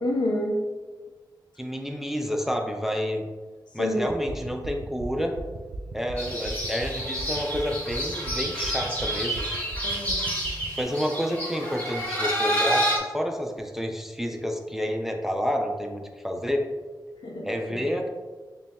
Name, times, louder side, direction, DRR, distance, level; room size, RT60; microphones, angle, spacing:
voice 1, 0.0-0.6 3.8-4.1 9.8-10.3 17.2-17.9, left 1 dB, 80° left, 1 dB, 0.7 m, -28 dB
voice 2, 1.6-3.2 3.7-5.4 5.9-9.5 10.8-16.7 17.5-18.1, equal, 5° right, 2 dB, 0.4 m, -29 dB
sound 1, 4.0-10.8, right 2 dB, 70° right, 0.5 m, -38 dB
sound 2, 6.2-13.0, equal, 25° left, 1.1 m, -29 dB
6.6 x 2.3 x 2.2 m, 1.4 s
wide cardioid pair, 100°, 8 cm